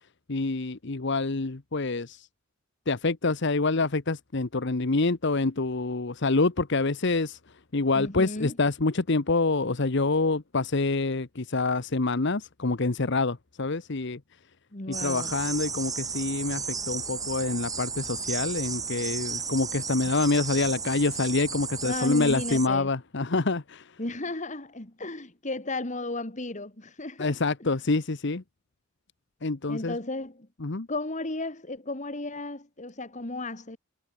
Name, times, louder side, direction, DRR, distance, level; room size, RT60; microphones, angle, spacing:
voice 1, 0.3-2.3 2.9-7.4 7.7-14.2 15.0-24.0 27.2-28.4 29.4-30.0 30.6-30.9, left 3 dB, 60° left, 1.0 m, -26 dB
voice 2, 7.9-8.6 14.7-15.4 21.8-22.9 24.0-27.7 29.7-30.5 30.9-33.8, left 2 dB, 35° left, 2.4 m, -34 dB
sound 1, 14.9-22.7, right 5 dB, 20° right, 1.7 m, -33 dB
head